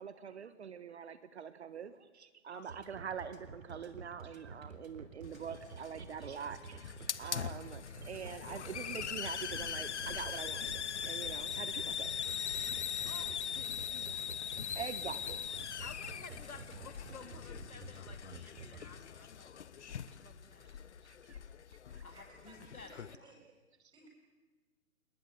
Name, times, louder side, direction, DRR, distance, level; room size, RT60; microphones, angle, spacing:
voice 1, 0.0-12.8 14.7-15.6 18.8-18.9 21.2-21.4 21.9-22.0, right 7 dB, 50° right, 13 dB, 1.4 m, -45 dB
voice 2, 2.5-2.9 12.6-14.3 15.8-21.0 22.0-23.3, left 3 dB, 80° left, 8 dB, 3.1 m, -54 dB
sound 1, 2.7-18.8, right 5 dB, 65° right, 3.9 m, -50 dB
Hiss, 5.2-23.1, left 8 dB, 55° left, 1.1 m, -41 dB
voice 3, 21.9-23.6 23.9-24.1, right 3 dB, 10° right, -1 dB, 7.9 m, -59 dB
28.5 x 20.0 x 9.4 m, 1.3 s
figure-of-eight pair, 135°, 42 cm